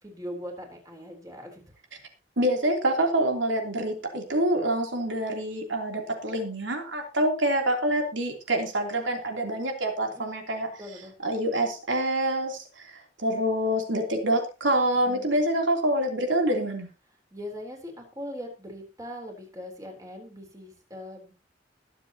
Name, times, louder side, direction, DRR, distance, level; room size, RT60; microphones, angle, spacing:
voice 1, 0.0-1.6 10.1-10.3 10.8-11.1 15.0-15.3 17.3-21.3, equal, 20° right, 2 dB, 3.7 m, -40 dB
voice 2, 2.4-10.7 11.2-16.9, right 1 dB, 80° right, 2 dB, 3.3 m, -26 dB
21.0 x 7.7 x 2.9 m, 0.31 s
head